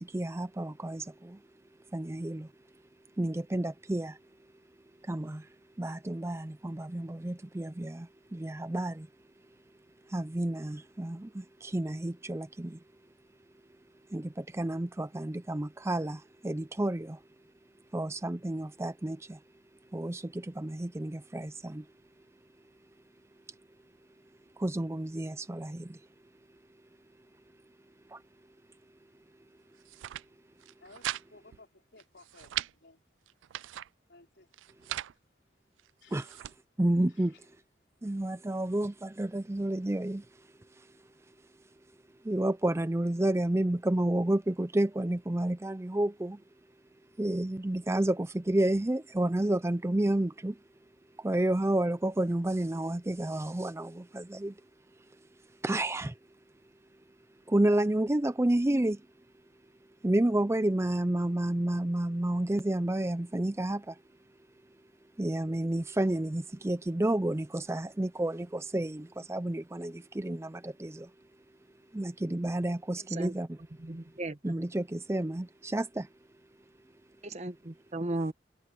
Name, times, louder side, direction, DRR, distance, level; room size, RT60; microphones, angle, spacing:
voice 1, 0.0-1.4 1.9-2.5 3.2-4.2 5.0-5.5 5.8-9.1 10.1-12.8 14.1-17.2 17.9-19.4 19.9-21.9 24.6-26.0 28.1-28.2 36.1-36.4 36.8-37.4 38.0-40.3 40.8-40.9 42.2-46.4 47.2-50.6 51.2-54.6 55.6-56.2 57.5-59.0 60.0-64.0 65.2-71.1 71.9-73.6 74.4-76.1, right 1 dB, 15° right, 0.5 m, -30 dB
sound 1, 29.7-30.2 30.6-31.2 31.5-31.6 32.0-32.7 33.3-33.9 34.5-35.1 35.8-36.5, right 13 dB, 85° right, 0.3 m, -38 dB
voice 2, 30.8-33.1 34.1-34.5 36.0-36.3 37.1-37.4, left 3 dB, 65° left, 4.7 m, -57 dB
voice 3, 73.8-74.5 77.2-78.3, right 2 dB, 35° right, 1.2 m, -36 dB
head